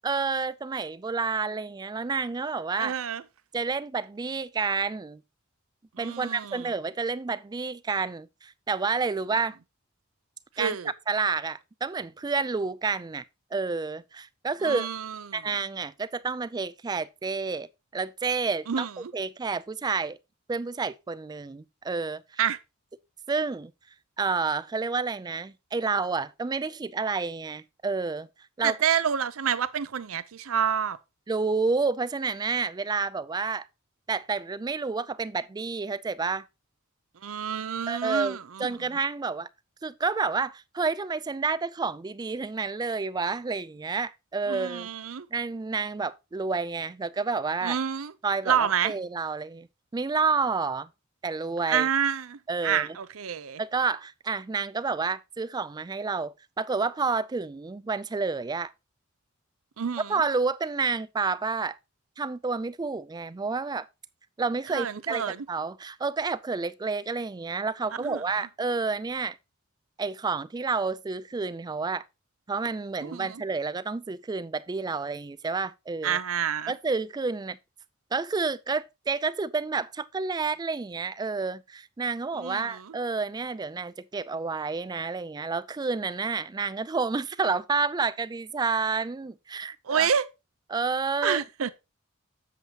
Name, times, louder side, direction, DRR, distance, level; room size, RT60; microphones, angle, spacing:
voice 1, 0.0-2.9 3.5-5.2 6.0-9.6 10.6-10.8 11.1-13.2 13.5-14.9 15.3-17.7 17.9-20.2 20.5-22.4 23.3-23.7 24.2-28.3 28.6-28.8 31.3-33.7 34.1-36.4 37.9-39.5 39.8-44.9 45.3-47.8 48.2-49.7 49.9-50.9 51.2-51.9 52.5-53.0 53.6-58.7 60.1-61.8 62.2-63.9 64.4-69.4 70.0-72.0 72.5-76.2 76.7-77.6 78.1-90.1 90.7-91.4, right 4 dB, 20° right, 0.3 m, -29 dB
voice 2, 2.8-3.2 6.0-6.6 10.6-10.9 14.6-15.2 18.7-18.9 22.4-22.6 28.6-31.0 37.2-38.7 44.5-45.3 47.6-48.1 48.5-48.9 51.7-53.6 59.8-60.1 64.7-65.4 68.0-68.2 73.0-73.4 76.0-76.7 82.4-83.0 89.9-90.3 91.2-91.7, right 8 dB, 90° right, 0.6 m, -28 dB
8.1 x 7.2 x 2.9 m
head